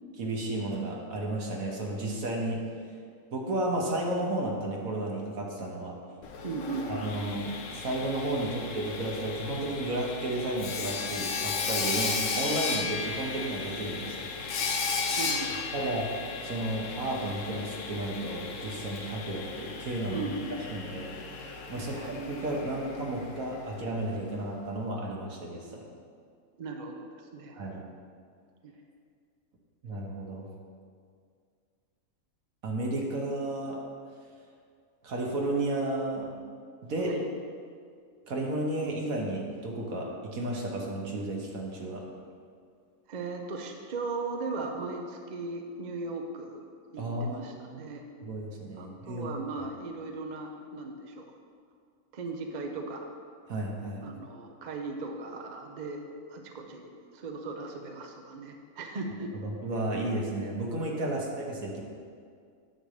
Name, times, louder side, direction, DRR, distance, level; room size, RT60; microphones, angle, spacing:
voice 1, 0.2-2.6 3.3-6.0 6.9-14.3 15.7-16.1 16.4-20.3 20.7-21.2 21.7-25.8 27.5-27.8 29.8-30.5 32.6-33.8 35.0-36.3 36.8-37.1 38.3-42.0 47.0-47.9 48.2-49.3 53.5-54.0 59.4-61.8, right 1 dB, 70° right, -1 dB, 1.5 m, -33 dB
Sawing, 6.2-24.0, left 4 dB, 60° left, 1.0 m, -35 dB
voice 2, 6.4-7.1 15.2-15.9 20.1-21.0 21.7-22.1 26.6-27.6 28.6-28.7 37.1-37.3 43.1-48.0 48.7-51.3 52.1-53.1 54.0-56.0 56.3-59.3, right 3 dB, 45° right, 3 dB, 0.6 m, -38 dB
9.7 x 3.3 x 6.5 m, 2.2 s
omnidirectional pair, 1.6 m